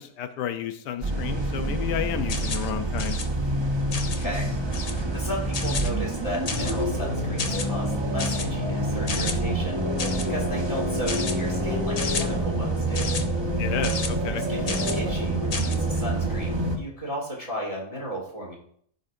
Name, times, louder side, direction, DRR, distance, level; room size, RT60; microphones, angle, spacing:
voice 1, 0.0-3.2 13.6-14.4, left 10 dB, 90° left, 9 dB, 1.2 m, -32 dB
sound 1, 1.0-16.8, right 1 dB, 20° right, 0.8 m, -27 dB
sound 2, 2.3-2.7 3.0-3.3 3.9-4.2 4.7-5.0 5.5-5.9 6.5-6.8 7.4-7.7 8.2-8.5 9.1-9.4 10.0-10.3 11.1-11.4 12.0-12.2 12.9-13.2 13.8-14.1 14.7-15.0 15.5-15.8, left 4 dB, 65° left, 0.3 m, -32 dB
voice 2, 4.0-9.8 10.3-13.1 14.3-18.5, equal, 20° left, -3 dB, 3.0 m, -35 dB
15.5 x 5.5 x 2.6 m, 0.62 s
omnidirectional pair, 1.7 m